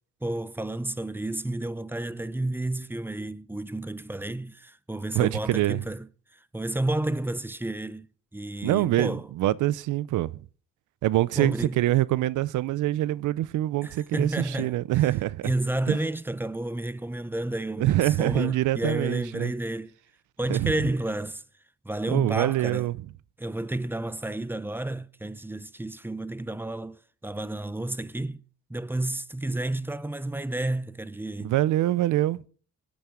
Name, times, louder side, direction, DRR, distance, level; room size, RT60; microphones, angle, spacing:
voice 1, 0.2-6.1 6.5-8.1 8.3-9.3 11.4-11.8 13.8-14.8 15.4-19.9 20.4-21.4 21.8-22.9 23.4-28.4 28.7-31.5, right 1 dB, 5° right, 0.6 m, -31 dB
voice 2, 5.1-5.8 8.6-10.3 11.0-15.5 15.9-16.0 17.8-19.5 20.5-20.7 22.1-23.0 31.4-32.4, right 15 dB, 80° right, 0.6 m, -25 dB
21.0 x 8.8 x 3.7 m
cardioid pair, 90°, 30 cm